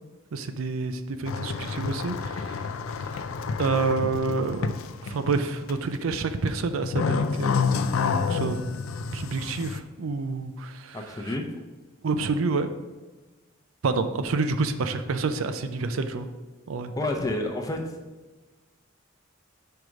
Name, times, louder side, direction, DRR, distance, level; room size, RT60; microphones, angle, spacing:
voice 1, 0.3-2.6 3.1-3.2 3.6-4.7 5.0-7.7 8.3-8.7 9.1-11.0 12.0-12.7 13.8-16.3 16.7-16.9, right 4 dB, 90° right, 9 dB, 0.5 m, -28 dB
sound 1, 1.2-5.4 5.7-6.1 6.5-9.8, left 5 dB, 85° left, 0.4 m, -29 dB
voice 2, 10.9-11.5 17.0-17.8, left 2 dB, 15° left, 3 dB, 0.6 m, -29 dB
4.9 x 4.7 x 5.2 m, 1.2 s
head